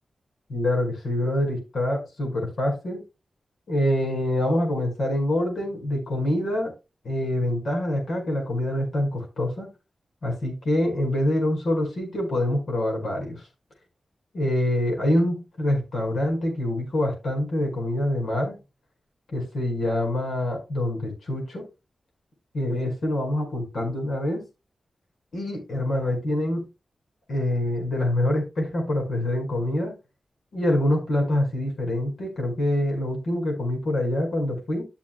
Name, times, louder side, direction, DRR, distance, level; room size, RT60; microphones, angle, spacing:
voice 1, 0.5-3.0 3.7-6.7 7.0-9.7 10.2-13.4 14.3-18.6 19.3-21.6 22.5-24.4 25.3-26.7 27.3-29.9 30.5-34.8, left 1 dB, 70° left, 5.2 m, -25 dB
14.0 x 7.0 x 2.3 m
wide cardioid pair, 160°, 0 cm